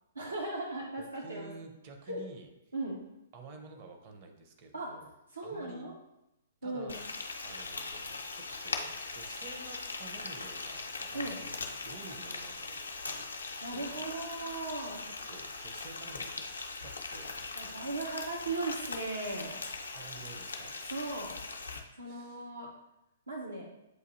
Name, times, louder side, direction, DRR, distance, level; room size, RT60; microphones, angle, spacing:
voice 1, 0.2-1.5 2.1-2.2 2.7-3.0 4.7-4.9 5.3-5.9 6.6-6.9 11.1-11.4 13.6-15.0 17.5-19.6 20.9-21.3 22.0-22.7 23.3-23.7, right 2 dB, 80° right, -2 dB, 0.7 m, -37 dB
voice 2, 1.0-2.5 3.3-5.1 5.4-5.9 6.6-7.0 7.4-14.0 15.0-17.3 19.9-20.7 22.0-22.5, right 4 dB, 35° right, 4 dB, 0.7 m, -51 dB
Frying (food), 6.9-21.8, left 3 dB, 75° left, 0.5 m, -40 dB
7.8 x 2.6 x 2.6 m, 0.89 s
figure-of-eight pair, 115°, 0 cm